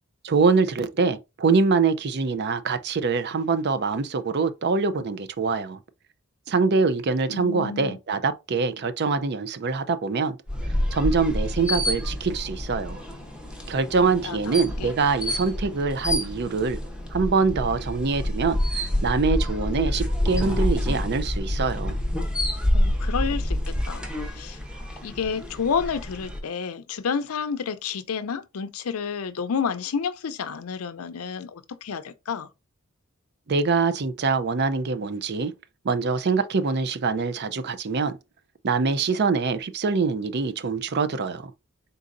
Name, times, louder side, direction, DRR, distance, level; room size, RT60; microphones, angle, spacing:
voice 1, 0.2-5.8 6.5-10.4 10.9-13.0 13.7-16.8 17.1-22.0 33.5-35.5 35.8-38.2 38.6-41.5, right 4 dB, 50° right, 0.5 m, -24 dB
voice 2, 7.3-8.0 14.2-14.4 14.8-14.9 22.7-24.1 24.3-24.6 25.0-32.5, left 6 dB, 80° left, 0.5 m, -30 dB
sound 1, 10.5-26.4, left 1 dB, 5° right, 0.8 m, -28 dB
4.1 x 3.8 x 2.5 m
head